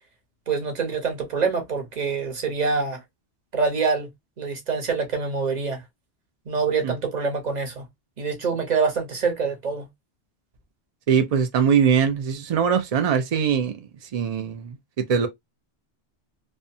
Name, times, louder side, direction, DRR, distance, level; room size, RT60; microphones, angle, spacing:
voice 1, 0.5-3.0 3.5-4.1 4.4-5.8 6.5-7.8 8.2-9.9, right 5 dB, 40° right, 0.9 m, -25 dB
voice 2, 11.1-13.8 14.1-14.8 15.1-15.3, right 7 dB, 70° right, 0.3 m, -21 dB
2.5 x 2.2 x 2.5 m
omnidirectional pair, 1.2 m